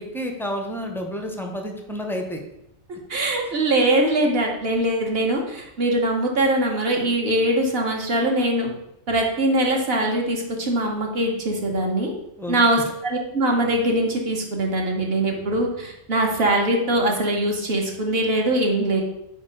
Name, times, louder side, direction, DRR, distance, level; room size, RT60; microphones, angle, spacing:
voice 1, 0.0-2.4 12.4-12.5, equal, 5° left, 2 dB, 0.3 m, -30 dB
voice 2, 3.1-8.7 9.1-12.1 12.5-19.0, right 1 dB, 50° right, 1 dB, 1.2 m, -22 dB
4.5 x 4.4 x 5.1 m, 0.82 s
omnidirectional pair, 1.4 m